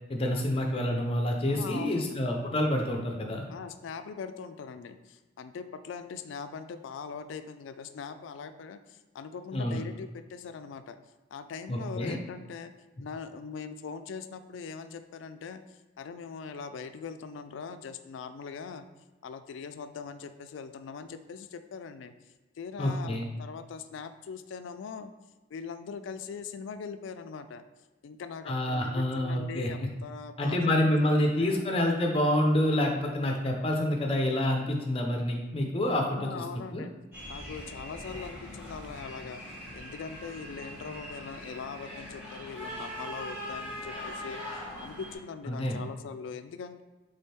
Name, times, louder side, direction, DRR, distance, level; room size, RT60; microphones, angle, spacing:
voice 1, 0.1-3.4 9.5-9.8 11.7-12.2 22.8-23.3 28.5-29.7 30.4-36.4 36.7-36.8 45.5-45.8, left 1 dB, 30° left, 2 dB, 0.6 m, -27 dB
voice 2, 1.5-2.2 3.5-11.0 11.3-12.7 13.0-15.6 16.0-18.9 19.2-22.1 22.6-25.1 25.5-27.6 28.0-31.7 36.1-36.9 37.3-39.4 39.7-44.4 44.8-46.8, left 5 dB, 80° left, 10 dB, 0.3 m, -41 dB
sound 1, 37.1-45.1, left 1 dB, 10° right, 1.2 m, -41 dB
3.6 x 3.3 x 4.2 m, 1.2 s
head